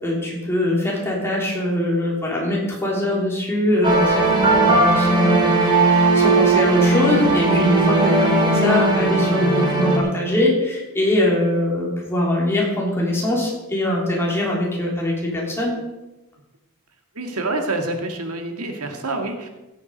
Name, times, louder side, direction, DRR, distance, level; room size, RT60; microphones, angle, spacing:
voice 1, 0.0-15.7, left 1 dB, 10° left, -3 dB, 3.2 m, -22 dB
sound 1, 3.8-10.0, right 2 dB, 20° right, 2.6 m, -17 dB
voice 2, 17.1-19.5, right 2 dB, 90° right, 4 dB, 2.0 m, -27 dB
16.5 x 7.4 x 5.2 m, 1.0 s
head